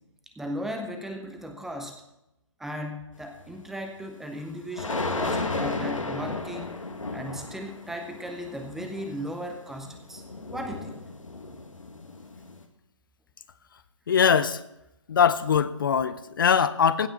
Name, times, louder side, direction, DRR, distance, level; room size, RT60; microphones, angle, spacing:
voice 1, 0.4-2.0 2.6-6.7 7.1-10.2 10.5-11.0, equal, ahead, 5 dB, 0.5 m, -36 dB
sound 1, 3.4-3.5 4.7-12.6, left 3 dB, 85° left, 1.6 m, -34 dB
voice 2, 14.1-14.6 15.1-17.1, left 7 dB, 40° left, 14 dB, 0.5 m, -22 dB
16.0 x 5.7 x 5.8 m, 0.86 s
figure-of-eight pair, 145°, 16 cm